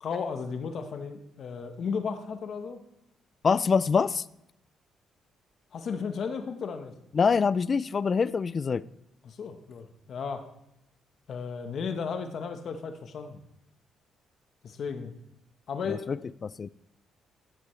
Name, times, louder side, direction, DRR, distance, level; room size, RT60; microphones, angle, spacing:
voice 1, 0.0-2.8 5.7-6.9 9.2-10.4 11.3-13.4 14.6-15.1 15.7-16.1, left 5 dB, 60° left, 7 dB, 1.0 m, -34 dB
voice 2, 3.4-4.2 7.1-8.8 15.9-16.2 16.6-16.7, left 5 dB, 40° left, 20 dB, 0.3 m, -24 dB
14.0 x 8.3 x 3.2 m, 0.82 s
cardioid pair, 90°, 0 cm